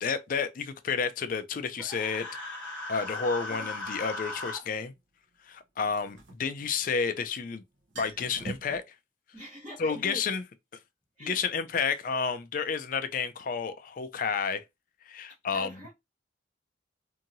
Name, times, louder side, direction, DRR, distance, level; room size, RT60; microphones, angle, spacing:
voice 1, 0.0-2.2 2.9-4.9 5.5-7.6 8.0-8.8 9.8-10.4 11.2-14.6 15.1-15.7, left 5 dB, 45° left, 0.3 m, -30 dB
Human voice, 1.8-4.6, left 2 dB, 5° left, 1.1 m, -37 dB
sound 1, 3.4-3.5 5.8-7.1 7.4-7.5 7.8-8.8, right 2 dB, 80° right, 0.8 m, -43 dB
voice 2, 9.3-10.3 11.2-11.4 15.5-15.9, equal, 25° right, 1.1 m, -43 dB
2.8 x 2.7 x 2.6 m
head